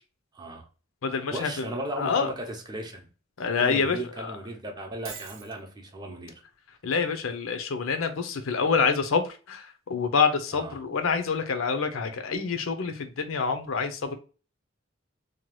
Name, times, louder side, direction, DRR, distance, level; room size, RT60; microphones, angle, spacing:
voice 1, 0.3-0.7 1.1-3.1 3.6-6.4 10.5-10.8, right 1 dB, 20° right, 0.5 m, -36 dB
voice 2, 1.0-1.5 2.0-2.3 3.4-4.3 6.8-14.1, left 5 dB, 80° left, 0.5 m, -27 dB
Shatter, 5.0-5.6, right 7 dB, 65° right, 0.5 m, -41 dB
2.8 x 2.2 x 3.0 m
head